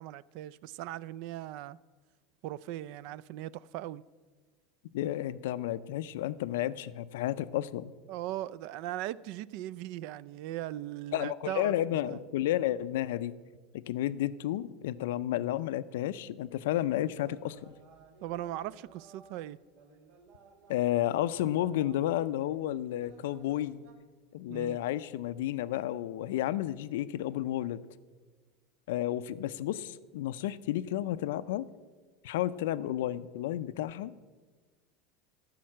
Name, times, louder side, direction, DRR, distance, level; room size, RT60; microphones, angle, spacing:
voice 1, 0.0-1.8 2.4-4.0 8.1-12.2 18.2-19.6 24.5-24.8, right 14 dB, 60° right, 0.3 m, -39 dB
voice 2, 4.9-7.9 11.1-13.3 13.7-17.7 20.7-23.8 24.3-27.8 28.9-31.7 32.2-34.1, left 13 dB, 85° left, 0.4 m, -32 dB
sound 1, 16.9-23.9, right 5 dB, 80° right, 2.0 m, -57 dB
13.5 x 5.7 x 7.4 m
supercardioid pair, 145°, 0 cm